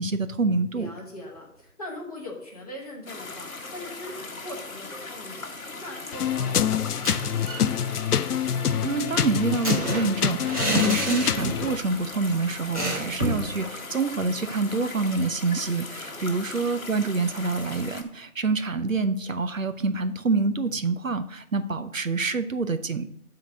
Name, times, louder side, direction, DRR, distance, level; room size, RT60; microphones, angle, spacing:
voice 1, 0.0-0.9 8.8-23.0, right 4 dB, 60° right, 10 dB, 0.6 m, -27 dB
voice 2, 0.7-5.5 5.8-8.0 16.0-16.4, left 1 dB, 25° left, -3 dB, 1.5 m, -41 dB
sound 1, 3.1-18.0, left 3 dB, 65° left, 1.2 m, -39 dB
sound 2, 6.1-11.8, left 8 dB, 85° left, 0.5 m, -26 dB
sound 3, 6.9-7.7 8.0-8.1 8.4-11.8 12.1-12.2 12.7-13.5, right 1 dB, 25° right, 1.6 m, -30 dB
7.5 x 3.9 x 6.2 m, 0.72 s
figure-of-eight pair, 165°, 45 cm